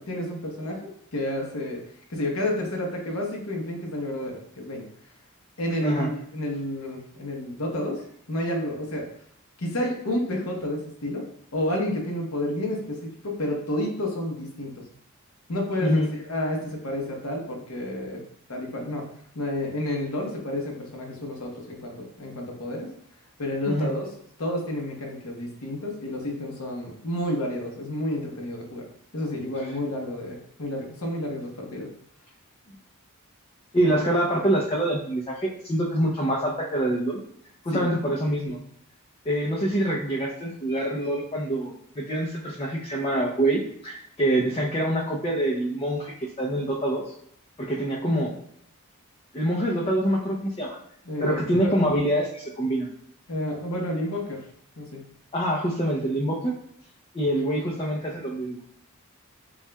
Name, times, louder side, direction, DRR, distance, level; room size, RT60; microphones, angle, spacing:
voice 1, 0.0-1.8 2.1-4.9 5.6-8.0 8.3-9.1 9.6-14.8 15.5-18.2 18.5-19.1 19.3-22.9 23.4-24.1 24.4-28.9 29.1-31.9 37.7-37.9 51.0-51.8 53.3-54.4 54.8-55.0, left 1 dB, 75° left, 0 dB, 1.0 m, -30 dB
voice 2, 23.7-24.0 33.7-37.2 37.6-38.6 39.3-46.1 46.4-47.1 47.6-48.3 49.3-50.8 51.2-52.9 55.3-56.5 57.1-58.8, right 1 dB, 25° left, -4 dB, 0.6 m, -25 dB
7.0 x 2.4 x 2.2 m, 0.69 s
head